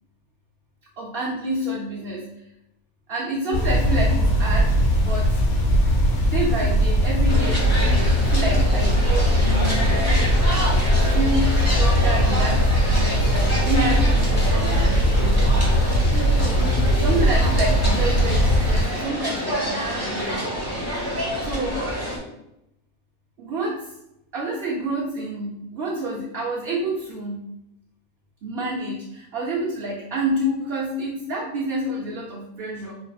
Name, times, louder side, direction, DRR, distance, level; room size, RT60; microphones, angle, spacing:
voice 1, 1.0-2.2 3.1-4.7 5.0-5.4 6.2-7.6 8.2-10.0 10.9-15.6 17.0-20.3 21.4-21.9 23.4-23.8 24.3-27.4 28.4-32.9, right 1 dB, 55° right, -4 dB, 0.7 m, -28 dB
sound 1, 3.5-18.8, equal, 80° left, 1.2 m, -19 dB
sound 2, 7.3-22.2, equal, 15° left, 0.9 m, -28 dB
4.2 x 3.7 x 2.2 m, 0.85 s
omnidirectional pair, 1.5 m